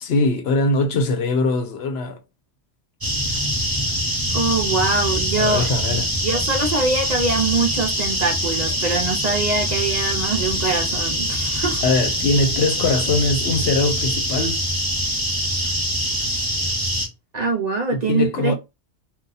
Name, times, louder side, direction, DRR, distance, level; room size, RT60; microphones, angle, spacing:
voice 1, 0.0-2.2 5.4-6.1 11.8-14.6 17.9-18.5, left 3 dB, 65° left, 0.8 m, -21 dB
sound 1, 3.0-17.1, equal, 20° right, 0.8 m, -24 dB
voice 2, 4.3-11.8 17.3-18.5, right 3 dB, 45° right, 0.6 m, -23 dB
2.7 x 2.3 x 3.8 m
omnidirectional pair, 1.2 m